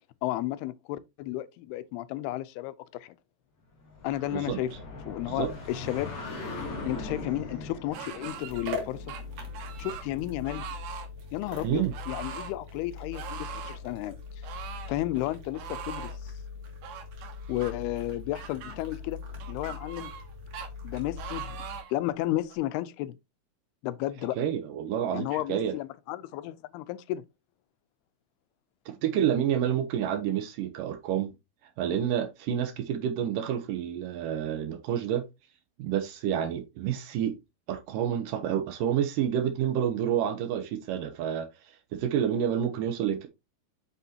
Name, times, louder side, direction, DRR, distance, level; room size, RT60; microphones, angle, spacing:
voice 1, 0.2-3.2 4.0-4.7 5.0-6.2 6.8-9.1 9.8-10.7 11.3-14.2 14.9-16.3 17.5-19.2 19.5-20.1 20.8-23.1 23.8-24.4 25.1-27.2, left 15 dB, 90° left, 2.6 m, -33 dB
sound 1, 3.8-10.4, left 3 dB, 30° left, 2.5 m, -40 dB
sound 2, 7.9-8.8 9.1-10.1 10.4-11.1 11.9-12.5 13.1-13.8 14.4-14.9 15.5-16.2 16.8-17.7 18.3-18.8 19.4-20.3 20.5-20.7 21.2-22.0 22.5-22.6, right 9 dB, 90° right, 3.1 m, -41 dB
sound 3, 8.4-21.8, left 4 dB, 45° right, 2.6 m, -41 dB
voice 2, 24.4-25.7 28.9-31.3 31.8-35.2 35.8-37.4 37.7-41.5 41.9-43.3, right 9 dB, 70° right, 2.2 m, -29 dB
8.1 x 6.4 x 2.8 m
omnidirectional pair, 4.5 m